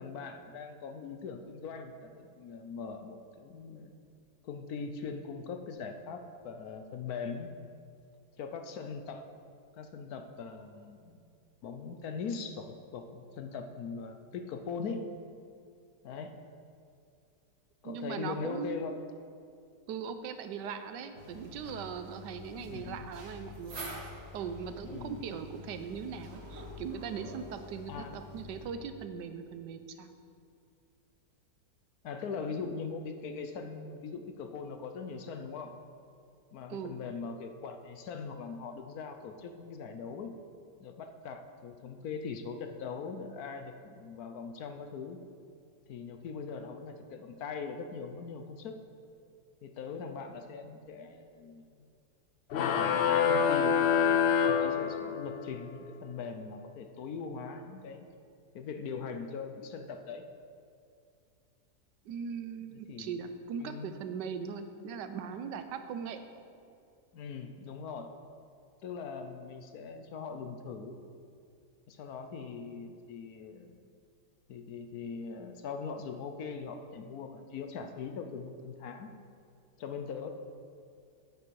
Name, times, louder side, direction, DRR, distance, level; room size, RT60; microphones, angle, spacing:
voice 1, 0.0-3.9 4.4-7.5 8.4-9.3 9.7-11.2 11.6-15.0 16.0-16.3 17.8-18.9 22.6-23.0 24.8-25.2 27.9-28.1 32.0-35.7 36.5-40.3 40.8-45.2 45.9-48.7 49.6-51.9 52.5-54.2 54.5-58.1 58.5-60.2 62.9-63.2 63.6-64.0 67.1-68.1 68.8-71.0 71.9-73.8 74.5-79.1 79.8-80.3, left 5 dB, 65° left, 6 dB, 1.1 m, -41 dB
voice 2, 17.8-18.8 19.9-24.1 24.3-30.1 36.7-37.0 62.0-66.2, right 6 dB, 90° right, 9 dB, 1.3 m, -40 dB
sound 1, 21.2-28.7, left 1 dB, 40° right, 1.4 m, -47 dB
sound 2, 52.5-55.4, left 7 dB, 90° left, 0.5 m, -26 dB
10.5 x 8.5 x 4.7 m, 2.4 s
omnidirectional pair, 1.8 m